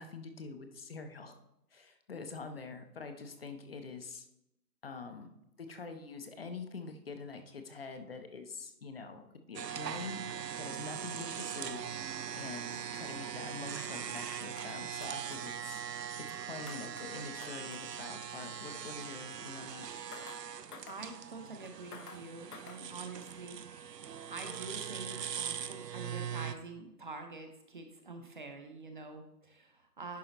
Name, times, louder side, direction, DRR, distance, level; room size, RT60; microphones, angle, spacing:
voice 1, 0.0-1.4 1.7-4.3 4.8-5.3 5.6-10.2 10.6-11.9 12.4-15.8 16.4-19.9, left 4 dB, 40° left, 7 dB, 0.7 m, -45 dB
sound 1, 9.5-26.5, right 8 dB, 85° right, 0.7 m, -41 dB
sound 2, 14.3-14.7 15.0-15.4 16.7-17.1 17.4-17.8 20.1-20.4 20.7-21.0 21.9-22.2 22.5-22.8, left 5 dB, 70° left, 1.0 m, -50 dB
voice 2, 20.9-23.6 24.3-30.2, right 3 dB, 30° right, 5 dB, 0.6 m, -46 dB
10.5 x 3.9 x 3.9 m, 0.82 s
figure-of-eight pair, 150°, 47 cm